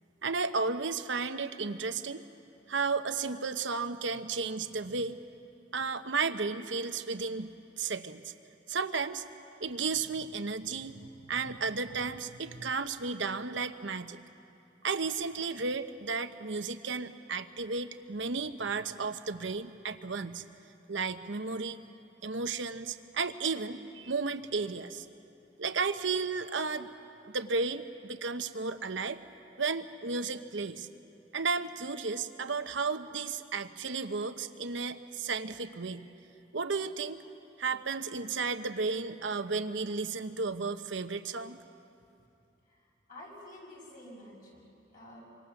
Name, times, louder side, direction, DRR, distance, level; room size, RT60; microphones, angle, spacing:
voice 1, 0.2-2.2 2.7-5.2 5.7-8.3 8.7-9.2 9.6-14.2 14.8-20.4 20.9-21.8 22.2-25.0 25.6-26.9 27.3-29.2 29.6-30.9 31.3-36.1 36.5-37.2 37.6-41.6, right 4 dB, 70° right, 9 dB, 1.0 m, -33 dB
voice 2, 43.1-45.3, left 1 dB, 45° left, -2 dB, 7.0 m, -49 dB
26.5 x 25.0 x 7.2 m, 2.7 s
head